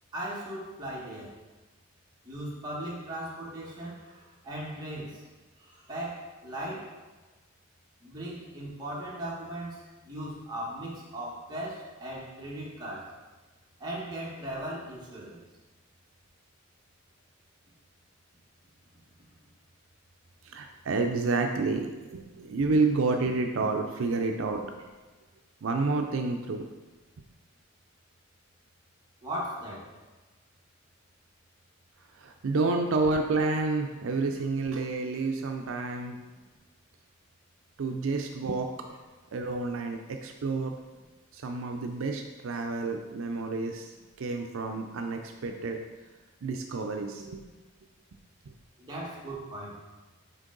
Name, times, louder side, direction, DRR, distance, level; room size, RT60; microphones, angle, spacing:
voice 1, 0.1-1.3 2.2-5.2 5.6-6.9 8.0-13.1 13.8-15.4 29.2-29.9 48.8-49.8, right 1 dB, 20° right, -5 dB, 1.4 m, -38 dB
voice 2, 20.4-24.7 25.6-26.7 32.1-36.2 37.8-38.7 39.3-40.7 41.3-43.9 44.2-45.8 46.4-47.4, right 3 dB, 70° right, 4 dB, 0.5 m, -29 dB
6.3 x 4.5 x 3.8 m, 1.3 s
head